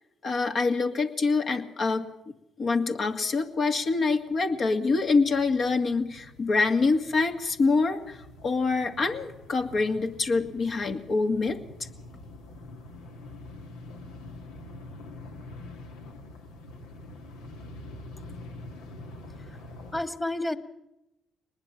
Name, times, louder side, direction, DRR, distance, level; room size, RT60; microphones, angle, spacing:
voice 1, 0.2-2.1 2.6-11.6, left 4 dB, 55° left, 5 dB, 2.1 m, -25 dB
sound 1, 3.1-3.2 3.4-20.0, left 2 dB, 85° left, 1.8 m, -46 dB
voice 2, 19.3-19.6 19.9-20.6, left 1 dB, 20° left, 9 dB, 2.1 m, -31 dB
22.5 x 20.0 x 5.9 m, 0.92 s
hypercardioid pair, 50°, 0 cm